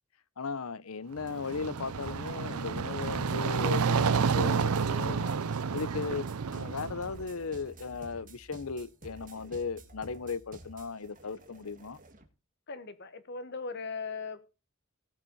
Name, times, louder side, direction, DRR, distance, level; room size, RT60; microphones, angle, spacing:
voice 1, 0.4-5.4 5.7-12.0, left 4 dB, 75° left, 0.7 m, -37 dB
sound 1, 1.2-12.3, right 1 dB, 40° right, 1.9 m, -51 dB
sound 2, 1.2-7.2, right 5 dB, 85° right, 0.6 m, -30 dB
voice 2, 12.7-14.4, left 4 dB, 55° left, 1.5 m, -38 dB
18.0 x 6.1 x 4.0 m
head